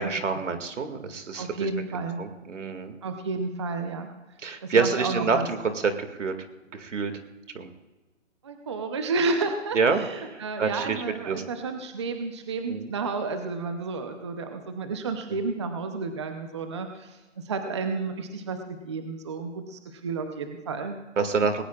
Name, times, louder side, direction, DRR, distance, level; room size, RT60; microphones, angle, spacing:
voice 1, 0.0-3.0 4.4-6.3 6.7-7.1 7.5-7.7 9.7-10.0 10.3-11.4 12.7-12.9 21.2-21.6, right 5 dB, 75° right, 7 dB, 2.2 m, -27 dB
voice 2, 1.4-2.2 3.0-4.1 4.6-5.5 8.4-17.2 17.4-21.0, right 4 dB, 25° right, 6 dB, 0.7 m, -31 dB
19.5 x 18.0 x 2.4 m, 1.2 s
hypercardioid pair, 170°, 37 cm